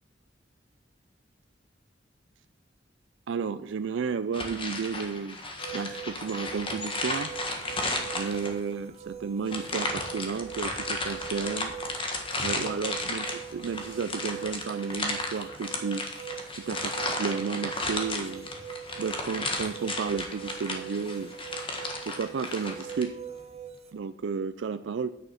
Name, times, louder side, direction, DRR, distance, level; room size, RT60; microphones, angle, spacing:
voice 1, 3.3-5.4 5.7-7.3 8.1-11.7 12.4-16.0 16.7-18.5 19.0-21.3 22.1-23.2 23.9-25.1, right 5 dB, 90° right, 11 dB, 0.4 m, -32 dB
sound 1, 4.3-8.7 9.5-23.1, left 2 dB, 30° left, 1.6 m, -34 dB
sound 2, 5.6-23.9, right 8 dB, 35° right, 0.9 m, -42 dB
9.6 x 6.2 x 5.6 m, 0.88 s
head